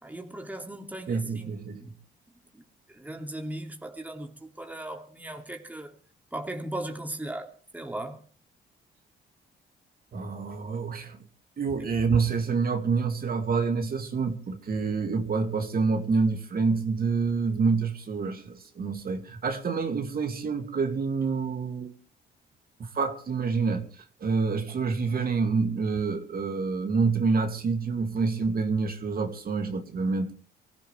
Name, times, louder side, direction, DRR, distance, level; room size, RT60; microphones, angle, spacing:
voice 1, 0.0-1.9 2.5-2.6 2.9-6.0 6.3-8.2 11.8-11.9, right 1 dB, 10° right, 3 dB, 2.7 m, -38 dB
voice 2, 1.1-1.9 10.1-11.2 11.6-21.9 22.8-30.3, right 4 dB, 50° right, 4 dB, 2.7 m, -27 dB
24.5 x 15.5 x 3.5 m, 0.42 s
cardioid pair, 90°, 20 cm